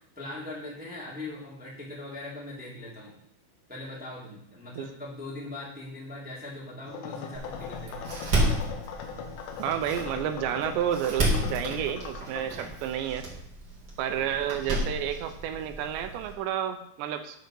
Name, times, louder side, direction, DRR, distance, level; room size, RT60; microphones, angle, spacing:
voice 1, 0.2-3.1 3.7-8.2, left 2 dB, 5° right, -6 dB, 1.9 m, -40 dB
sound 1, 6.8-12.4, left 6 dB, 75° left, 3.1 m, -40 dB
Door, 7.3-16.3, right 1 dB, 40° right, 1.9 m, -32 dB
voice 2, 9.6-13.3 14.0-17.4, right 9 dB, 80° right, 8 dB, 2.8 m, -30 dB
10.5 x 5.0 x 6.3 m, 0.70 s
omnidirectional pair, 5.3 m